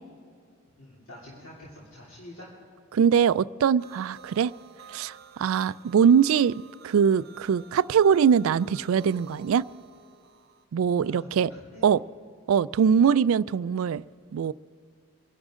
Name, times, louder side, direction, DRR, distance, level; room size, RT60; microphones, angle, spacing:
voice 1, 0.8-2.5 11.0-12.2, left 1 dB, 65° left, -6 dB, 2.9 m, -47 dB
voice 2, 2.9-4.5 4.9-9.6 10.7-11.5 11.8-12.0 12.5-14.0 14.3-14.5, right 7 dB, 70° right, 19 dB, 0.3 m, -22 dB
sound 1, 3.8-10.6, right 5 dB, 45° right, 0.8 m, -51 dB
25.0 x 11.5 x 3.7 m, 2.4 s
head